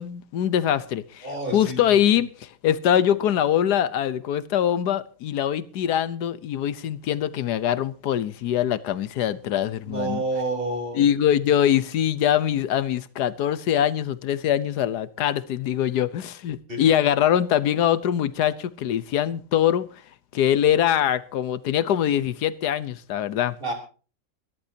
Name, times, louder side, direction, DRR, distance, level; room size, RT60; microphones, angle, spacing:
voice 1, 0.0-1.3 1.5-10.2 10.9-19.9 20.3-23.5, left 10 dB, 85° left, 1.4 m, -23 dB
voice 2, 1.2-1.8 9.9-11.1 16.7-16.8 23.6-23.7, right 2 dB, 35° right, 3.6 m, -29 dB
22.5 x 13.5 x 2.8 m
omnidirectional pair, 1.7 m